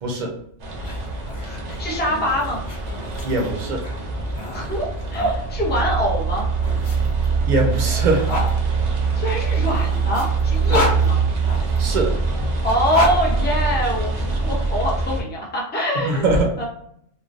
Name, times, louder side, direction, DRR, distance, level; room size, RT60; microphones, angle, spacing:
voice 1, 0.0-0.3 3.2-3.8 7.4-8.3 10.7-10.9 11.8-12.1 16.0-16.5, right 2 dB, 50° right, 0 dB, 0.7 m, -21 dB
sound 1, 0.6-15.2, right 4 dB, 80° right, 1.0 m, -23 dB
sound 2, 0.7-5.4 6.3-8.5 9.4-11.8 12.6-14.2, left 3 dB, 65° left, 0.9 m, -30 dB
voice 2, 1.4-2.6 4.5-6.5 9.2-11.2 12.6-16.3 16.6-16.7, equal, 15° left, -2 dB, 0.4 m, -24 dB
3.2 x 2.2 x 2.4 m, 0.69 s
omnidirectional pair, 1.2 m